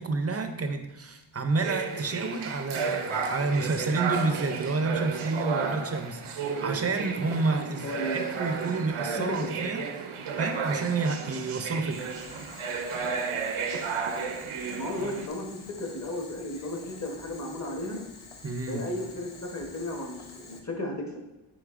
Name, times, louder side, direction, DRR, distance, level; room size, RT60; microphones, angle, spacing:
voice 1, 0.0-9.8 10.4-12.1 18.4-18.9, right 3 dB, 30° right, 7 dB, 0.5 m, -29 dB
sound 1, 1.6-15.3, right 5 dB, 90° right, 0.8 m, -33 dB
voice 2, 5.4-5.7 7.8-8.3 9.3-9.5 14.8-18.0 18.7-21.2, left 1 dB, 35° left, 2 dB, 1.1 m, -34 dB
Boiling, 11.9-20.6, left 4 dB, 80° left, 0.9 m, -48 dB
8.2 x 5.1 x 2.5 m, 1.0 s
wide cardioid pair, 170°, 48 cm